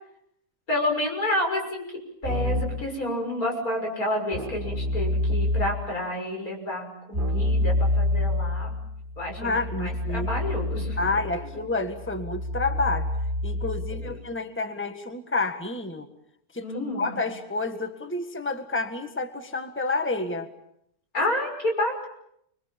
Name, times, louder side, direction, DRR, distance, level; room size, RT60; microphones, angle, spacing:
voice 1, 0.7-1.9 2.2-8.8 9.2-11.1 13.9-14.2 16.6-17.0 21.1-22.1, left 1 dB, 80° left, 1 dB, 6.7 m, -29 dB
Keyboard (musical), 2.2-2.9 4.3-5.9 7.1-14.2, left 1 dB, 35° right, 2.6 m, -28 dB
voice 2, 9.4-10.3 11.0-13.1 13.4-16.1 16.5-16.7 16.9-20.5, left 3 dB, 10° left, 7 dB, 1.6 m, -29 dB
29.5 x 23.0 x 7.3 m, 0.74 s
omnidirectional pair, 1.5 m